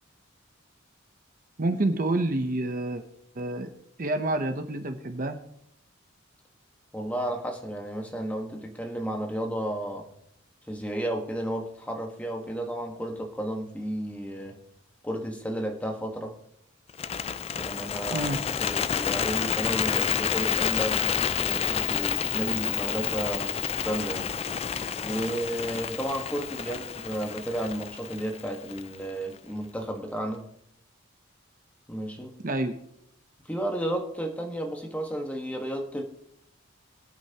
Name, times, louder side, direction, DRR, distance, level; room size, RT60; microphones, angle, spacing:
voice 1, 1.6-3.0 3.3-3.7 4.0-5.4 18.1-18.4 32.4-32.8, right 2 dB, 40° right, 7 dB, 0.8 m, -28 dB
voice 2, 6.9-10.1 10.7-14.6 15.0-16.4 17.5-18.3 18.6-21.0 21.4-24.6 25.0-30.5 31.9-32.3 33.4-36.0, right 1 dB, 5° left, 2 dB, 1.4 m, -33 dB
Bird, 16.9-29.1, left 8 dB, 30° left, 0.3 m, -29 dB
21.5 x 8.8 x 2.9 m, 0.74 s
head